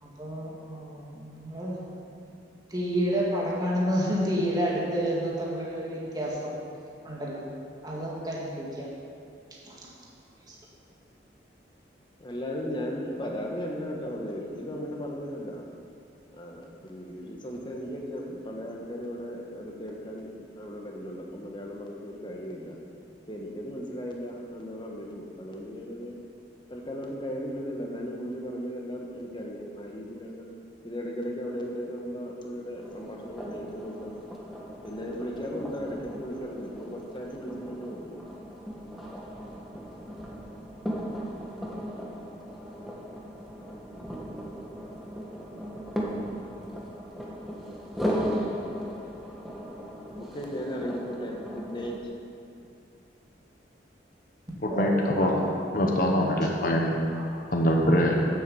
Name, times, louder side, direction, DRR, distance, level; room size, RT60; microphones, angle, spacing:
voice 1, 0.0-1.8 2.7-6.6 7.0-7.4 7.8-8.9 9.6-9.7 10.5-10.6 54.7-55.6 57.2-57.3, equal, 20° right, -5 dB, 2.0 m, -30 dB
voice 2, 12.2-15.6 16.3-22.8 23.3-26.2 26.7-30.5 30.8-34.2 34.8-38.2 50.2-51.9, equal, 25° left, 0 dB, 1.4 m, -36 dB
sound 1, 32.8-52.0, equal, ahead, 1.3 m, -37 dB
voice 3, 54.6-55.4 55.7-56.9 57.5-58.3, equal, 50° left, 0 dB, 1.2 m, -23 dB
9.4 x 7.7 x 7.1 m, 2.6 s
head